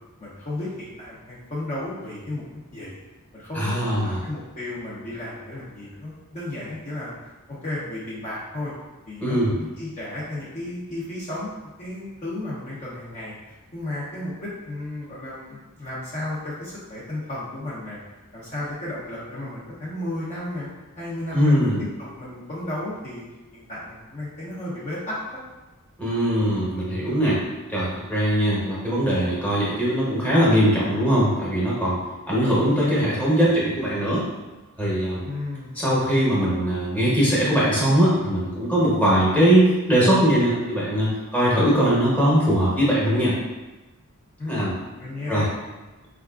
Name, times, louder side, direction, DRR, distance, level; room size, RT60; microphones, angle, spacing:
voice 1, 0.2-2.4 2.7-3.0 3.3-7.1 7.5-8.7 9.1-13.4 13.7-18.0 18.3-20.7 21.0-23.2 23.5-25.2 35.2-35.8 44.4-45.5, left 1 dB, 35° left, -8 dB, 0.6 m, -33 dB
voice 2, 3.5-4.2 9.2-9.6 21.3-21.8 26.0-27.4 27.7-32.0 32.3-34.3 34.8-35.3 35.8-43.4 44.5-44.8 45.3-45.5, equal, 5° left, -8 dB, 0.9 m, -21 dB
4.6 x 2.4 x 2.3 m, 1.2 s
head